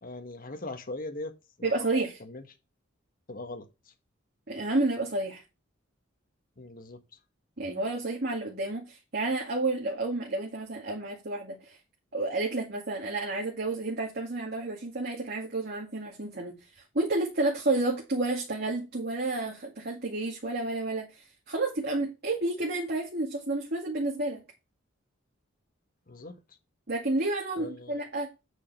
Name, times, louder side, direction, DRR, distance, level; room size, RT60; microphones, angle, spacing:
voice 1, 0.0-1.9 2.2-2.4 3.3-3.9 6.6-7.0 26.1-26.4 27.6-28.0, left 2 dB, 45° left, 1.6 m, -40 dB
voice 2, 1.6-2.2 4.5-5.4 7.6-11.8 12.1-16.5 16.9-24.4 26.9-28.3, right 2 dB, 55° right, 2.1 m, -30 dB
8.5 x 5.1 x 5.6 m
head